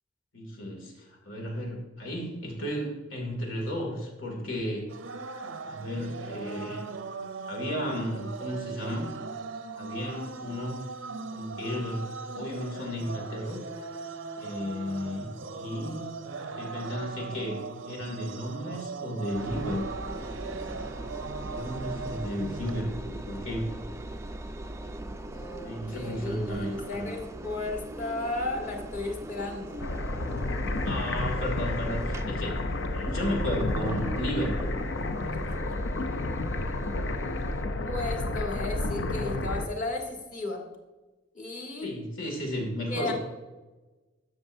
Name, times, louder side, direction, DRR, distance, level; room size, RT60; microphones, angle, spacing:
voice 1, 0.3-4.9 5.7-6.8 7.5-9.1 9.7-10.8 11.3-13.6 14.4-16.1 16.4-20.3 21.3-23.7 25.6-27.2 30.8-32.6 32.9-34.8 41.8-43.1, equal, 85° left, 0 dB, 2.4 m, -34 dB
sound 1, 4.9-22.8, right 4 dB, 85° right, 0.6 m, -39 dB
Engine, 19.4-37.6, right 1 dB, 15° right, 0.3 m, -41 dB
voice 2, 25.3-29.8 35.3-35.6 37.8-40.6 41.3-41.9 42.9-43.1, left 2 dB, 40° left, 0 dB, 1.5 m, -34 dB
sound 2, 29.8-39.7, left 2 dB, 65° left, 0.6 m, -31 dB
13.0 x 6.2 x 2.6 m, 1.2 s
head